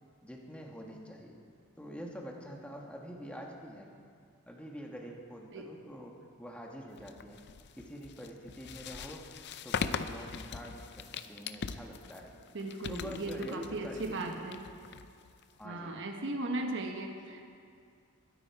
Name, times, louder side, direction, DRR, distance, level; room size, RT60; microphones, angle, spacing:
voice 1, 0.2-1.4 1.8-3.9 4.5-7.4 7.8-9.3 9.6-12.3 12.9-14.3 15.6-16.0, equal, 5° left, 0 dB, 1.3 m, -46 dB
sound 1, 7.0-15.6, left 6 dB, 50° left, 0.5 m, -41 dB
voice 2, 12.5-14.6 15.6-17.4, right 2 dB, 55° right, 3 dB, 1.2 m, -37 dB
21.5 x 10.0 x 4.7 m, 2.3 s
head